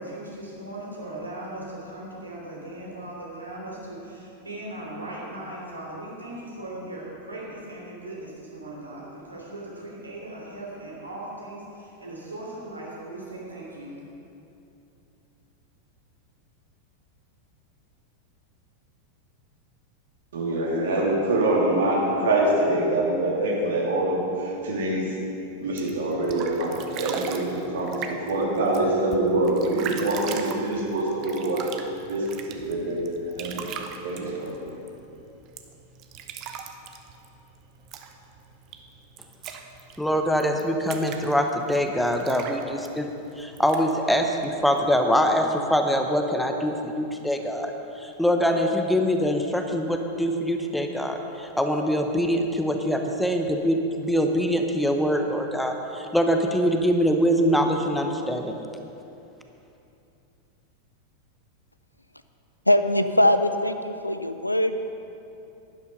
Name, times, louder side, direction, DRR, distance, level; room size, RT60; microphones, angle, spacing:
voice 1, 0.0-14.0, right 1 dB, 80° right, -4 dB, 3.3 m, -38 dB
voice 2, 20.3-25.1 25.6-31.7 32.1-33.0 33.4-34.7, right 2 dB, 60° right, -3 dB, 2.8 m, -25 dB
sound 1, 25.6-45.2, right 7 dB, 40° right, 0.9 m, -41 dB
voice 3, 40.0-47.7 48.0-58.6, equal, 5° left, 4 dB, 1.0 m, -24 dB
voice 4, 62.7-64.8, left 1 dB, 85° left, 9 dB, 0.5 m, -21 dB
11.5 x 11.0 x 5.4 m, 2.8 s
figure-of-eight pair, 90°, 0 cm